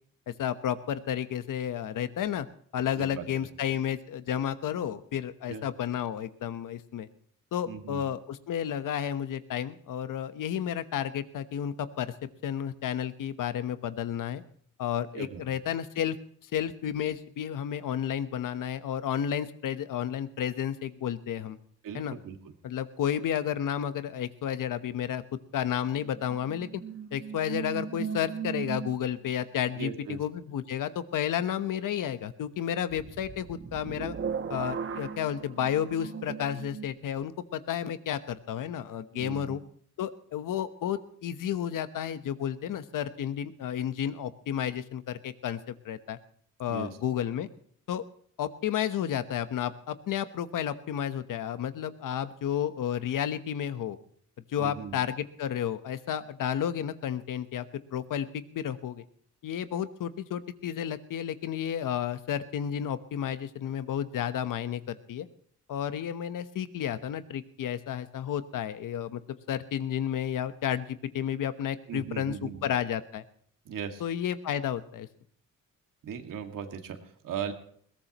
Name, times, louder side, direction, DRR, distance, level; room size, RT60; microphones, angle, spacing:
voice 1, 0.3-2.5 2.7-7.1 7.5-14.4 14.8-16.2 16.4-21.6 21.9-22.2 22.6-26.8 27.1-34.2 34.5-39.6 40.0-46.2 46.6-47.5 47.9-48.0 48.4-54.0 54.5-57.7 57.9-59.0 59.4-65.3 65.7-69.2 69.5-73.2 74.0-75.1, left 9 dB, 75° left, 12 dB, 1.1 m, -32 dB
voice 2, 7.7-8.0 15.1-15.4 21.8-22.5 29.8-30.2 39.1-39.6 46.7-47.0 54.6-55.0 71.9-72.6 73.7-74.0 76.0-77.5, right 7 dB, 80° right, 4 dB, 2.2 m, -38 dB
sound 1, 26.1-29.3 32.9-36.9, right 7 dB, 40° right, 1.1 m, -37 dB
21.0 x 17.5 x 3.0 m, 0.62 s
cardioid pair, 135°, 32 cm